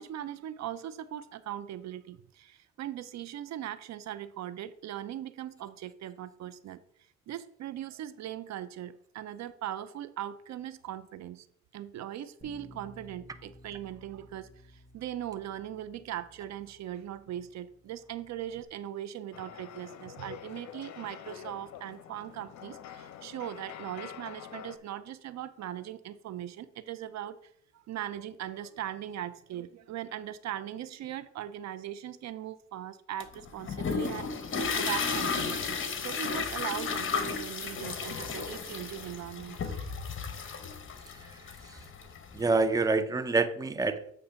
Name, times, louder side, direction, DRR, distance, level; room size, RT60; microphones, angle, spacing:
voice 1, 0.0-6.8 7.3-11.5 11.7-34.3 34.7-40.0, right 11 dB, 65° right, 13 dB, 0.5 m, -40 dB
Bass guitar, 12.4-18.6, left 2 dB, 10° left, 2.2 m, -56 dB
sound 1, 19.3-24.8, left 9 dB, 70° left, 0.7 m, -46 dB
sound 2, 33.2-42.6, left 5 dB, 40° left, 1.1 m, -34 dB
voice 2, 42.3-44.1, right 3 dB, 10° right, 11 dB, 0.5 m, -27 dB
8.0 x 3.3 x 5.6 m, 0.66 s
cardioid pair, 90°, 30 cm